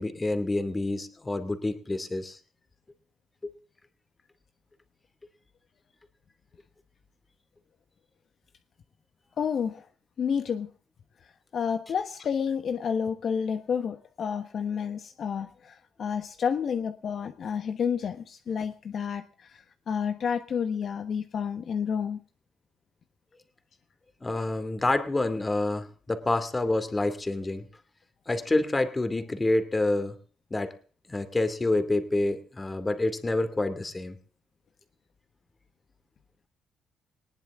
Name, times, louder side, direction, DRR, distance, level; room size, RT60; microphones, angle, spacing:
voice 1, 0.0-2.4 3.4-3.5 24.2-27.6 28.3-30.1 30.5-30.7 31.1-34.1, left 2 dB, 20° left, 10 dB, 2.4 m, -27 dB
voice 2, 9.4-9.9 10.2-10.7 11.5-22.2, left 7 dB, 55° left, 8 dB, 1.2 m, -30 dB
19.5 x 18.5 x 3.7 m, 0.41 s
cardioid pair, 90°, 0 cm